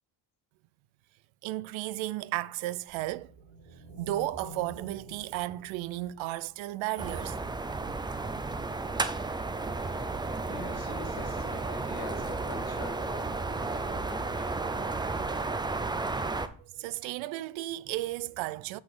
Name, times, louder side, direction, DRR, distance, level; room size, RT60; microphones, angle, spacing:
voice 1, 1.4-3.3 4.0-7.4 16.6-18.8, right 16 dB, 85° right, 0.5 m, -34 dB
sound 1, 2.9-7.3, equal, 60° right, 3.7 m, -49 dB
sound 2, 7.0-16.5, right 3 dB, 10° right, 0.4 m, -33 dB
voice 2, 10.4-14.5, left 5 dB, 85° left, 2.2 m, -45 dB
8.2 x 3.9 x 4.8 m
cardioid pair, 105°, 45 cm